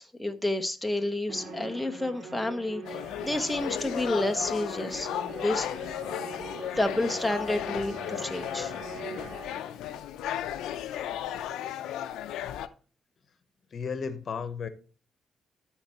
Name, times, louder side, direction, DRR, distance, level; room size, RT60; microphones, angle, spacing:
voice 1, 0.0-5.1 5.4-5.7 6.7-8.7, left 1 dB, 5° left, 0.7 m, -30 dB
Musical instrument, 1.3-9.8, right 3 dB, 65° right, 2.2 m, -42 dB
sound 1, 2.8-12.7, left 11 dB, 85° left, 0.5 m, -35 dB
voice 2, 13.7-14.7, left 6 dB, 50° left, 1.0 m, -33 dB
13.0 x 4.5 x 2.9 m
cardioid pair, 90°, 0 cm